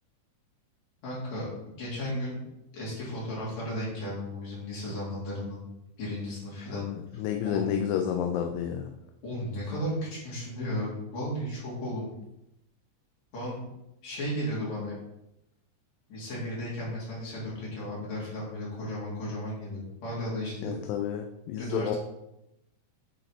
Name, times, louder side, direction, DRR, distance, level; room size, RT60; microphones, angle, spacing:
voice 1, 1.0-2.4 2.7-5.6 6.0-6.9 7.4-7.7 9.2-12.1 13.3-13.6 14.0-15.0 16.1-20.8 21.6-22.0, equal, 55° left, -7 dB, 3.6 m, -34 dB
voice 2, 6.7-8.9 20.6-22.0, left 9 dB, 80° left, 4 dB, 2.2 m, -30 dB
10.0 x 4.1 x 2.9 m, 0.88 s
omnidirectional pair, 4.0 m